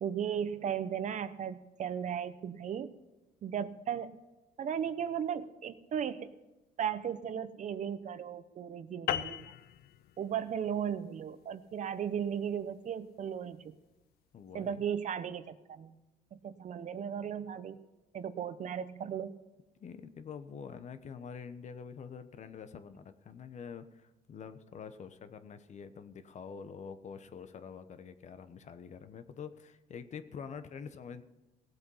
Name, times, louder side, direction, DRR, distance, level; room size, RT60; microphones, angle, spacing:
voice 1, 0.0-2.9 3.4-4.2 4.6-6.3 6.8-9.5 10.2-13.7 14.5-16.0 16.3-17.8 18.1-19.3, right 8 dB, 45° right, 13 dB, 0.8 m, -36 dB
sound 1, 9.1-13.8, left 11 dB, 65° left, 0.6 m, -40 dB
voice 2, 14.3-14.8 19.8-31.2, left 6 dB, 45° left, 10 dB, 1.0 m, -46 dB
17.5 x 7.9 x 5.6 m, 1.1 s
cardioid pair, 110°, 17 cm